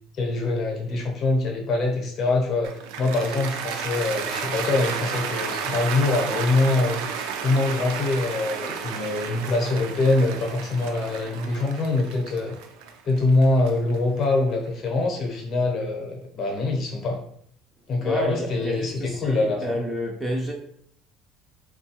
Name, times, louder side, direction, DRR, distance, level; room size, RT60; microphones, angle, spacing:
voice 1, 0.2-7.0 7.4-12.6 13.0-17.2 17.9-19.8, left 2 dB, 40° left, 0.7 m, -24 dB
Cheering / Applause, 2.6-14.9, right 6 dB, 85° right, 0.4 m, -32 dB
voice 2, 18.0-20.5, right 1 dB, 5° right, 0.3 m, -29 dB
3.6 x 2.3 x 2.8 m
cardioid pair, 170°, 0 cm